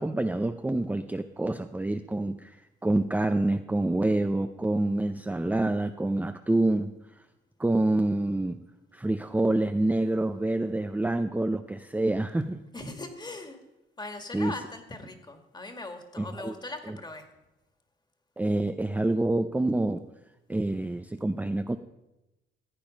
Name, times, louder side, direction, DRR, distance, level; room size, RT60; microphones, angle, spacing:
voice 1, 0.0-6.9 7.6-8.6 8.9-12.6 14.3-14.5 16.2-16.5 16.9-17.0 18.4-20.0 20.5-21.8, right 2 dB, 10° right, 7 dB, 0.6 m, -27 dB
voice 2, 12.7-13.6 14.0-17.3, left 2 dB, 20° left, 6 dB, 2.0 m, -40 dB
15.5 x 8.8 x 5.2 m, 0.96 s
cardioid pair, 90°, 20 cm